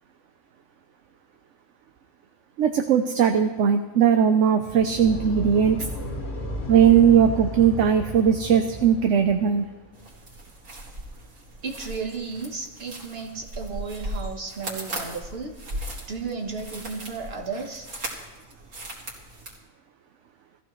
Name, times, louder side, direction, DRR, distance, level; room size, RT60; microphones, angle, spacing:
voice 1, 2.6-5.8 6.7-9.7, right 8 dB, 65° right, 6 dB, 1.0 m, -19 dB
sound 1, 4.6-9.8, left 1 dB, 60° left, 2.4 m, -34 dB
sound 2, 9.9-19.6, right 1 dB, 90° right, 2.7 m, -38 dB
voice 2, 11.6-15.5 16.1-17.9, right 4 dB, 45° right, 2 dB, 1.5 m, -34 dB
17.5 x 14.5 x 3.2 m, 1.2 s
omnidirectional pair, 1.4 m